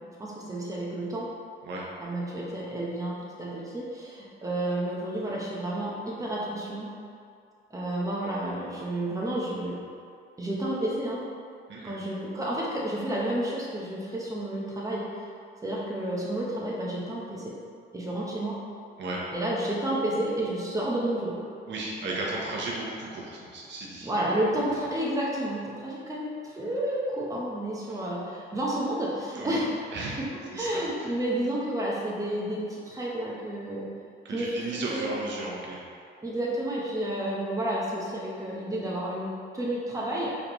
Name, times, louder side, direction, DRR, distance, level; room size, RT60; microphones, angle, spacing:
voice 1, 0.2-1.3 2.0-6.9 7.7-9.8 10.4-11.2 11.8-15.1 15.6-17.6 17.9-18.6 19.3-21.4 24.0-29.7 30.2-33.9 34.3-34.6 34.9-35.1 36.2-40.4, right 1 dB, 15° right, -5 dB, 1.0 m, -31 dB
voice 2, 11.7-12.0 19.0-19.2 21.7-24.1 29.3-29.6 29.9-30.2 30.5-31.1 34.2-35.8, right 2 dB, 65° right, -4 dB, 1.0 m, -35 dB
4.8 x 3.4 x 3.0 m, 2.3 s
cardioid pair, 90°, 20 cm